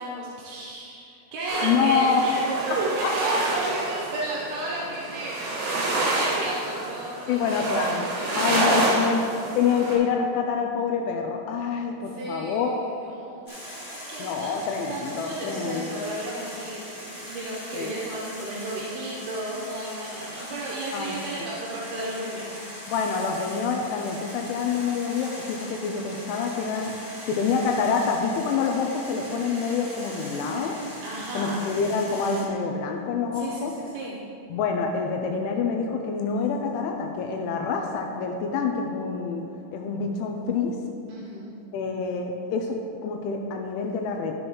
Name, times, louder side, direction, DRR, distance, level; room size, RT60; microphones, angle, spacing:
voice 1, 0.0-2.4 2.7-7.6 8.2-9.1 12.1-22.8 31.0-31.7 33.3-34.2 41.1-41.6, right 2 dB, 75° right, -5 dB, 2.4 m, -33 dB
sound 1, 1.5-10.0, right 2 dB, 55° right, 3.5 m, -28 dB
voice 2, 1.6-2.2 3.0-3.1 7.3-9.2 9.6-12.7 14.2-15.9 17.7-17.9 20.9-21.2 22.9-27.0 27.3-30.8 31.3-33.7 34.5-39.4 39.7-40.7 41.7-44.3, left 5 dB, 85° left, 2 dB, 2.9 m, -26 dB
sound 2, 13.4-32.4, equal, 40° left, 1.2 m, -41 dB
12.0 x 7.7 x 3.1 m, 2.7 s
omnidirectional pair, 5.6 m